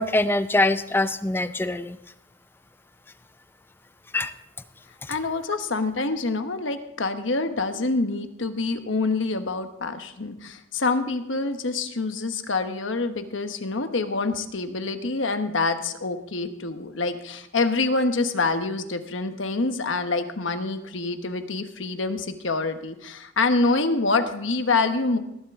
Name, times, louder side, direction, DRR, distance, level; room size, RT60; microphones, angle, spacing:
voice 1, 0.0-2.0 4.1-4.3 5.0-5.1, left 2 dB, 10° left, 12 dB, 0.4 m, -23 dB
voice 2, 5.1-25.2, left 3 dB, 70° left, 8 dB, 1.1 m, -26 dB
19.0 x 11.0 x 3.6 m, 0.84 s
head